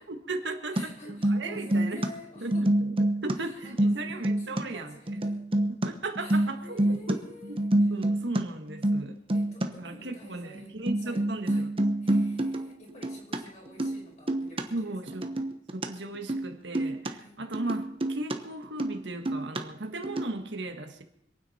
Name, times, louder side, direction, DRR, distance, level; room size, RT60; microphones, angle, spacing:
voice 1, 0.1-2.0 2.4-5.2 5.7-7.2 7.5-7.6 7.9-9.2 9.6-11.7 14.7-15.3 15.7-21.0, right 2 dB, 80° right, 5 dB, 1.6 m, -37 dB
voice 2, 0.7-2.7 3.4-5.4 6.2-8.0 9.3-11.7 12.0-15.0 17.2-17.4, left 2 dB, 40° left, -2 dB, 5.2 m, -49 dB
sound 1, 0.8-0.9 1.1-2.1 2.4-3.3 3.6-4.6 5.1-5.9 6.1-7.1 7.4-8.4 8.7-9.0 9.3-9.6 10.2-10.3 10.5-10.6 10.9-13.4 13.7-14.0 14.3-14.6 15.1-15.9 16.1-16.5 16.7-17.1 17.5-18.4 18.6-19.0 19.2-19.6 20.0-20.3, right 1 dB, 30° right, 1.0 m, -27 dB
26.0 x 9.5 x 4.3 m, 0.73 s
head